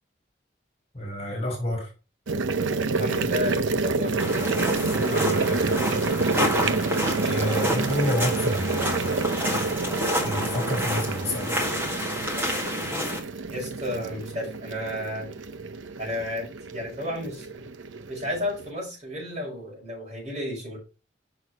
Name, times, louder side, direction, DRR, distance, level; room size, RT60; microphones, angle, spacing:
voice 1, 0.9-1.9 5.0-5.9 7.2-9.2 10.2-11.7, equal, 35° left, 1 dB, 2.7 m, -29 dB
sound 1, 2.3-18.7, right 3 dB, 85° right, 0.6 m, -28 dB
voice 2, 3.0-4.5 13.5-15.3 16.0-17.5 18.1-20.8, left 1 dB, 35° right, -3 dB, 5.4 m, -32 dB
sound 2, 4.2-13.2, left 1 dB, 10° right, 1.8 m, -29 dB
6.4 x 6.1 x 4.7 m, 0.31 s
head